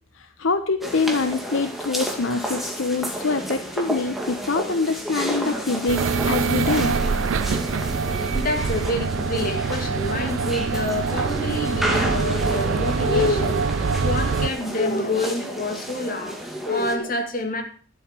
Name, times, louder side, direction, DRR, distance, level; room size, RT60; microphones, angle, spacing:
voice 1, 0.2-6.9, left 4 dB, 75° left, 9 dB, 0.9 m, -25 dB
sound 1, 0.8-17.0, equal, ahead, 2.1 m, -31 dB
sound 2, 5.9-14.5, right 5 dB, 80° right, 0.5 m, -24 dB
voice 2, 8.3-17.6, left 2 dB, 45° left, 4 dB, 2.4 m, -27 dB
12.0 x 8.0 x 6.7 m, 0.44 s
head